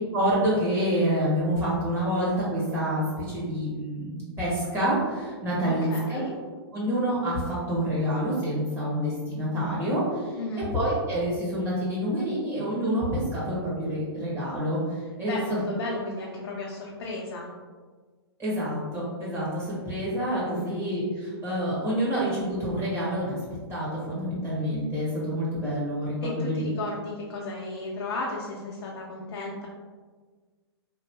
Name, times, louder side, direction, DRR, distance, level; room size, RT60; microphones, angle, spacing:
voice 1, 0.1-5.8 6.1-6.2 6.7-9.1 9.4-10.0 10.7-14.8 15.2-15.6 18.4-23.4 23.7-26.6, equal, 20° right, -8 dB, 1.4 m, -27 dB
voice 2, 5.6-6.3 10.4-10.7 15.3-17.5 20.5-20.8 26.2-29.7, left 2 dB, 65° left, -3 dB, 0.6 m, -34 dB
3.0 x 2.6 x 2.9 m, 1.5 s
hypercardioid pair, 130°, 14 cm